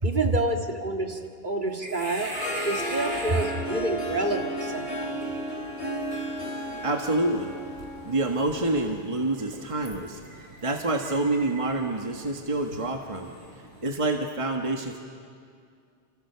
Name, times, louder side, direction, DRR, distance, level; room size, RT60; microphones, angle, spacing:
voice 1, 0.0-2.3 2.6-5.1, right 2 dB, 45° right, 3 dB, 2.2 m, -29 dB
sound 1, 1.7-13.9, right 1 dB, 65° right, 4.7 m, -42 dB
Harp, 2.1-9.2, right 1 dB, 75° left, 3.8 m, -34 dB
voice 2, 6.8-7.5 8.0-10.2 10.6-13.4 13.8-15.0, right 2 dB, 30° right, 3 dB, 1.5 m, -27 dB
30.0 x 27.5 x 6.9 m, 2.2 s
omnidirectional pair, 1.1 m